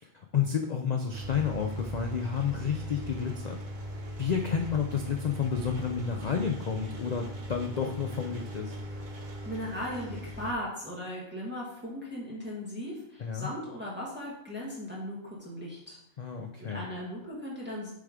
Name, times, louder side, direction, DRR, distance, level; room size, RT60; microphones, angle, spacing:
voice 1, 0.3-3.6 4.2-8.7 13.2-13.5 16.2-16.8, left 7 dB, 65° left, 3 dB, 0.4 m, -30 dB
Engine, 1.1-10.5, equal, 40° right, 0.9 m, -39 dB
voice 2, 9.4-16.0 16.6-17.9, equal, 10° right, -5 dB, 1.5 m, -37 dB
6.9 x 3.5 x 5.0 m, 0.80 s
omnidirectional pair, 1.4 m